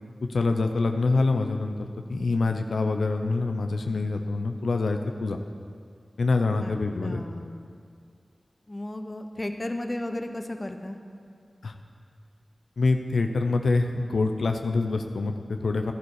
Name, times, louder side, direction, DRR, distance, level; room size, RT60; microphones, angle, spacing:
voice 1, 0.3-5.4 6.2-7.2 11.6-11.7 12.8-15.9, left 3 dB, 85° left, 5 dB, 0.6 m, -25 dB
voice 2, 6.6-7.6 8.7-11.0, left 1 dB, 30° left, 6 dB, 1.1 m, -34 dB
16.0 x 11.0 x 4.9 m, 2.2 s
wide cardioid pair, 50°, 0 cm